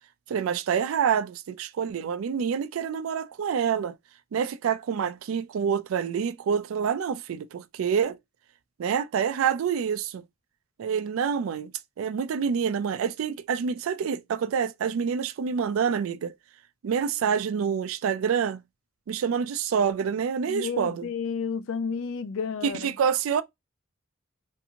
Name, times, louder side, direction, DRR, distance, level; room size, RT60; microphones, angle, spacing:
voice 1, 0.3-3.9 4.3-8.2 8.8-10.2 10.8-11.7 12.0-16.3 16.8-18.6 19.1-21.1 22.6-23.4, right 7 dB, 80° right, 0.3 m, -27 dB
voice 2, 20.5-22.9, left 6 dB, 70° left, 0.4 m, -31 dB
2.6 x 2.5 x 2.7 m
head